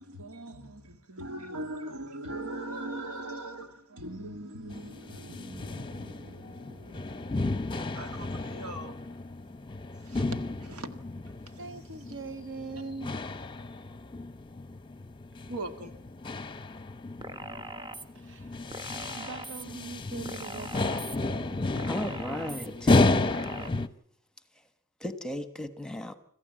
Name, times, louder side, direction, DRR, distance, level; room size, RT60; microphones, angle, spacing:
voice 1, 0.0-9.3 9.9-10.9 11.3-11.6 15.5-16.0, right 1 dB, 85° right, 2.0 m, -41 dB
sound 1, 4.7-23.9, left 2 dB, 20° left, 0.7 m, -32 dB
voice 2, 11.6-13.2 18.1-18.7 19.1-21.7, right 4 dB, 55° right, 0.7 m, -42 dB
sound 2, 17.2-18.0 18.7-19.6 20.2-21.2 21.8-22.7 23.3-23.7, right 2 dB, 20° right, 1.0 m, -41 dB
voice 3, 21.9-22.9 25.0-26.2, left 1 dB, 5° left, 1.2 m, -35 dB
26.5 x 14.5 x 7.6 m
head